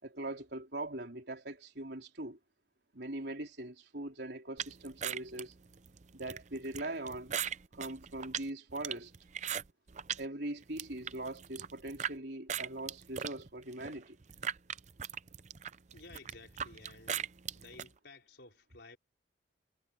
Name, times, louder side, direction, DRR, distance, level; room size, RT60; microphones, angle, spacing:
voice 1, 0.0-2.4 2.9-5.5 6.1-7.3 7.7-9.1 10.2-14.2, right 1 dB, 60° right, 4.0 m, -41 dB
sound 1, 4.6-10.2 10.6-12.1 12.5-17.9, right 8 dB, 40° right, 0.5 m, -39 dB
voice 2, 15.9-19.0, left 3 dB, 65° left, 5.1 m, -55 dB
head